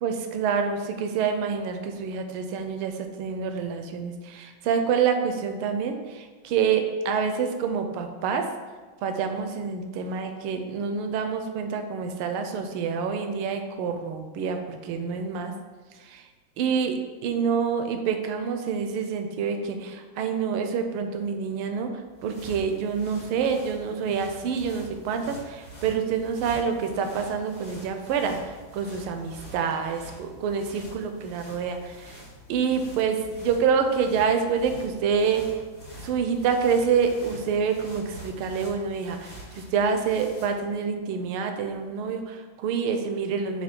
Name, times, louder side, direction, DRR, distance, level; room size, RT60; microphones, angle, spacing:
voice 1, 0.0-8.5 9.0-15.5 16.0-16.3 16.6-17.0 17.2-21.9 22.2-32.2 32.5-35.6 36.0-43.6, right 6 dB, 80° right, 6 dB, 1.5 m, -27 dB
sound 1, 21.9-40.7, equal, 30° left, 1.2 m, -46 dB
6.7 x 2.7 x 5.2 m, 1.4 s
omnidirectional pair, 2.4 m